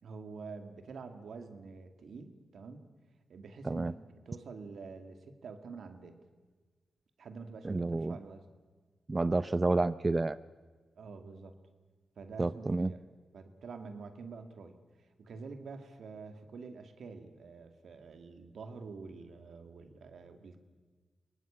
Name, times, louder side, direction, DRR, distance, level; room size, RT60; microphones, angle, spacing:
voice 1, 0.0-2.8 3.3-6.2 7.2-8.4 11.0-11.5 12.2-13.0 13.3-20.6, right 4 dB, 75° right, 7 dB, 2.4 m, -47 dB
voice 2, 7.6-8.2 9.1-10.4 12.4-12.9, right 2 dB, 35° right, 15 dB, 0.6 m, -29 dB
24.0 x 19.0 x 8.8 m, 1.4 s
cardioid pair, 50°, 0 cm